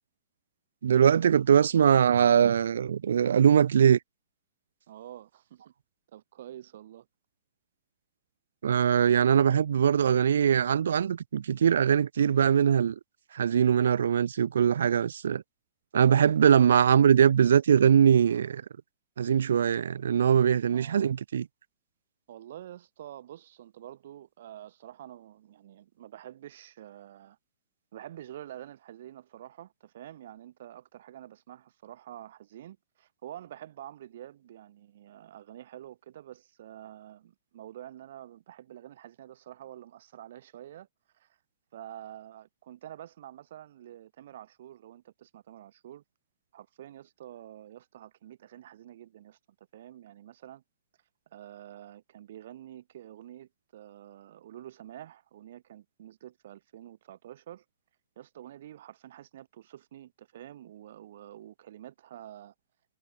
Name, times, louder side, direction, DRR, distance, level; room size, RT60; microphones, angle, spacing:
voice 1, 0.8-4.0 8.6-13.0 13.3-15.4 15.9-18.6 19.2-21.5, right 8 dB, 90° right, 0.5 m, -22 dB
voice 2, 4.9-5.7 6.1-7.1 20.7-21.1 22.3-27.4 27.9-40.9 41.1-41.4 41.7-46.0 46.5-49.4 49.7-50.6 51.3-57.6 58.2-62.5, right 12 dB, 50° right, 5.3 m, -47 dB
hypercardioid pair, 175°, 0 cm